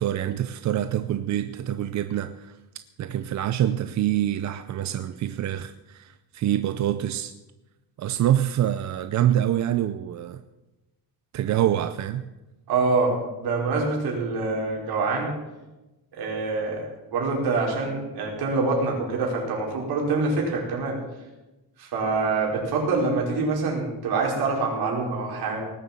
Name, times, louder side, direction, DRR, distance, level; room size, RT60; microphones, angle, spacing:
voice 1, 0.0-2.6 3.0-7.3 8.0-10.4 11.3-12.3, right 11 dB, 45° right, 11 dB, 0.5 m, -25 dB
voice 2, 12.7-15.3 16.1-21.0 21.8-25.6, right 3 dB, 70° right, -1 dB, 4.8 m, -25 dB
18.5 x 7.8 x 7.3 m, 1.0 s
cardioid pair, 180°, 39 cm